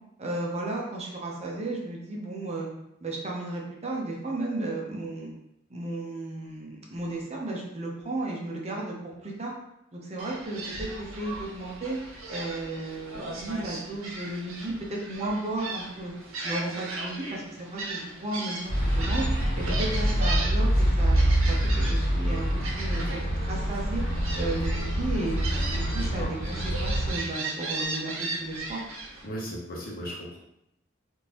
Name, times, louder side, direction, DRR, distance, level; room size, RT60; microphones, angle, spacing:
voice 1, 0.2-2.7 3.0-5.3 5.7-9.5 9.9-12.0 12.3-16.1 16.4-21.2 21.5-22.5 22.8-23.0 23.3-24.0 24.4-25.4 25.7-28.8, right 2 dB, 30° right, -2 dB, 0.6 m, -34 dB
Gull seagull, 10.2-29.3, right 2 dB, 90° right, 0.7 m, -37 dB
sound 1, 18.7-27.1, right 1 dB, 30° left, 1.4 m, -26 dB
voice 2, 29.2-30.4, equal, 45° left, -3 dB, 0.9 m, -36 dB
3.6 x 2.5 x 2.8 m, 0.81 s
head